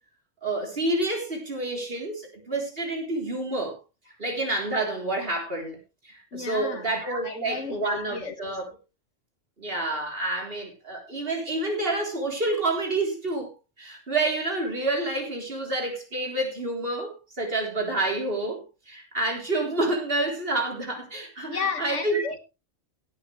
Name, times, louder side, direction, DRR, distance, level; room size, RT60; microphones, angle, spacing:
voice 1, 0.4-3.8 4.2-5.8 6.0-8.8 9.6-13.5 13.8-22.2, right 2 dB, 50° right, 3.9 m, -28 dB
voice 2, 6.3-6.9 7.2-8.4 21.5-22.4, left 5 dB, 75° left, 1.6 m, -33 dB
17.5 x 8.9 x 3.2 m
omnidirectional pair, 1.3 m